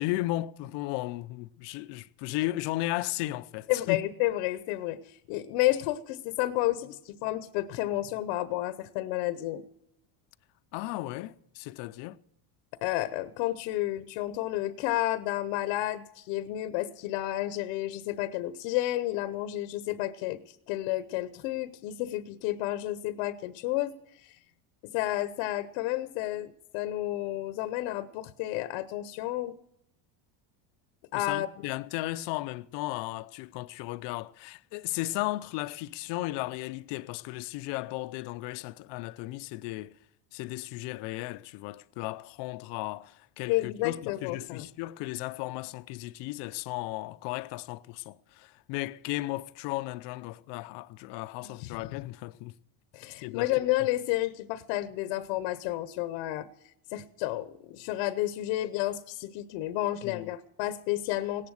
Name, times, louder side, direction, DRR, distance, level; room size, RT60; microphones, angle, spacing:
voice 1, 0.0-4.0 10.7-12.2 31.1-39.9 40.3-52.5 53.2-53.5 60.0-60.3, left 18 dB, 60° left, 0.7 m, -35 dB
voice 2, 3.7-9.6 12.8-24.3 24.8-29.6 31.1-31.7 43.5-44.7 51.4-51.8 52.9-56.5 56.9-61.5, left 15 dB, 75° left, 1.0 m, -31 dB
17.5 x 11.0 x 6.4 m
cardioid pair, 155°, 49 cm